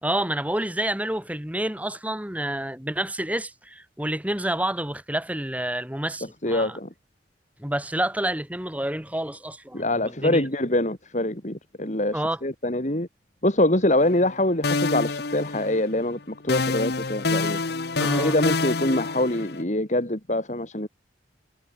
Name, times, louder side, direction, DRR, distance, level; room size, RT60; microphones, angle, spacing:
voice 1, 0.0-6.8 7.6-10.5 12.1-12.4 18.0-18.4, right 1 dB, 10° right, 1.9 m, -29 dB
voice 2, 6.4-6.9 9.7-13.1 13.4-17.6 18.2-20.9, left 1 dB, 40° left, 3.3 m, -24 dB
sound 1, 14.0-14.4 14.6-16.1 16.5-19.6, left 3 dB, 60° left, 1.1 m, -27 dB
head